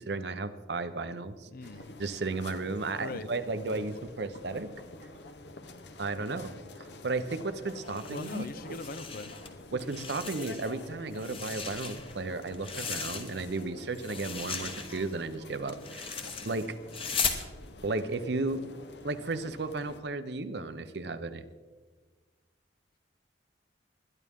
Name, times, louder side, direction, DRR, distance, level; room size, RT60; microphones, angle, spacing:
voice 1, 0.0-1.5 2.0-4.7 6.0-8.8 9.7-16.8 17.8-18.7 19.0-21.4, right 3 dB, 65° right, 11 dB, 0.8 m, -34 dB
voice 2, 1.5-1.9 3.0-3.3 8.1-9.3, left 3 dB, 50° left, 13 dB, 0.6 m, -40 dB
sound 1, 1.6-20.0, left 2 dB, 65° left, 1.0 m, -48 dB
sound 2, 7.8-9.5 9.8-10.8 11.1-13.6 13.9-17.4, left 5 dB, 30° left, 1.2 m, -37 dB
21.0 x 11.0 x 3.7 m, 1.4 s
head